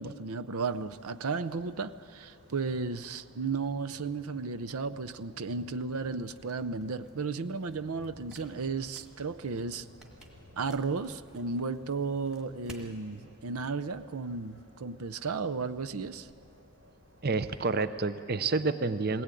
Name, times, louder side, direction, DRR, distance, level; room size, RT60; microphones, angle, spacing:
voice 1, 0.0-9.9 10.6-16.3, right 4 dB, 80° right, 0.7 m, -34 dB
sound 1, 0.7-17.8, equal, 60° right, 4.2 m, -58 dB
sound 2, 6.3-12.9, equal, 5° right, 2.0 m, -56 dB
voice 2, 17.2-19.2, right 3 dB, 45° right, 0.6 m, -29 dB
21.5 x 18.5 x 9.1 m
head